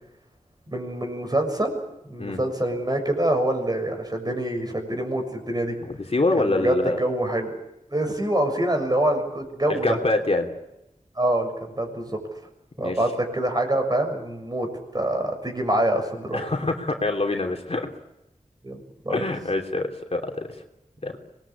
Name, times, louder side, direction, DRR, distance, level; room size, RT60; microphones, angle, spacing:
voice 1, 0.7-1.8 2.1-5.7 6.3-7.5 7.9-9.9 11.2-12.1 12.8-16.4 18.6-19.2, right 1 dB, 30° right, 4 dB, 6.7 m, -25 dB
voice 2, 5.8-7.0 9.7-10.5 12.8-13.0 16.3-17.9 19.1-20.5 21.0-21.2, left 2 dB, 50° left, 3 dB, 3.0 m, -25 dB
26.5 x 21.0 x 8.7 m, 0.89 s
wide cardioid pair, 85°, 14 cm